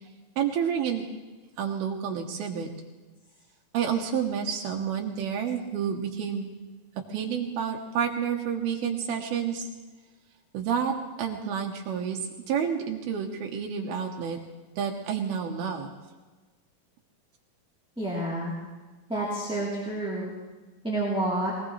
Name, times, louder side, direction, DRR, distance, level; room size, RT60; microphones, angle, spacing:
voice 1, 0.4-1.1 1.6-2.7 3.7-6.5 7.1-9.6 10.5-12.2 12.5-14.4 14.8-15.9, right 7 dB, 85° right, 1 dB, 3.0 m, -29 dB
voice 2, 18.0-18.5 19.1-20.3 20.8-21.5, right 1 dB, ahead, -7 dB, 2.8 m, -29 dB
22.5 x 18.0 x 3.3 m, 1.3 s
omnidirectional pair, 4.3 m